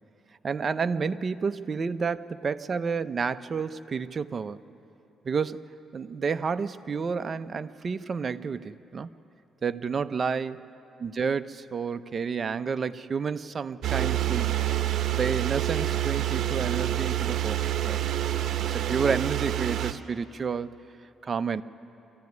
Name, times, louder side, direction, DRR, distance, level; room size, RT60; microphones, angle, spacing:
voice 1, 0.4-4.6 5.2-5.6 5.9-9.1 9.6-10.6 11.0-14.5 15.1-18.0 18.6-20.8 21.2-21.6, right 5 dB, 40° right, 12 dB, 0.7 m, -30 dB
sound 1, 13.8-19.9, right 12 dB, 70° right, 1.0 m, -27 dB
26.0 x 14.5 x 9.5 m, 2.8 s
cardioid pair, 90°, 0 cm